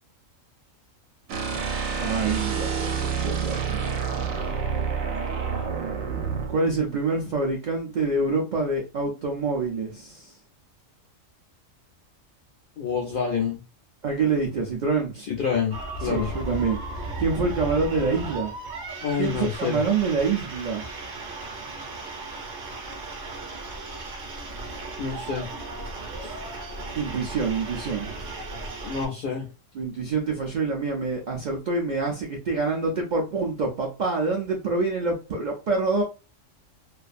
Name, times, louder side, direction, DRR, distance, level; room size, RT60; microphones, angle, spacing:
sound 1, 1.3-6.5, right 6 dB, 90° right, 1.0 m, -28 dB
voice 1, 2.0-4.1 6.5-10.4 14.0-15.2 16.0-16.8 17.2-18.5 19.2-20.8 27.0-28.1 29.7-36.0, right 4 dB, 70° right, 0.4 m, -26 dB
voice 2, 12.8-13.6 15.2-16.3 19.0-19.8 25.0-25.5 26.2-26.4 28.8-29.5, left 6 dB, 65° left, 0.5 m, -28 dB
sound 2, 15.7-29.1, right 2 dB, 50° right, 0.8 m, -36 dB
2.5 x 2.3 x 2.5 m
omnidirectional pair, 1.4 m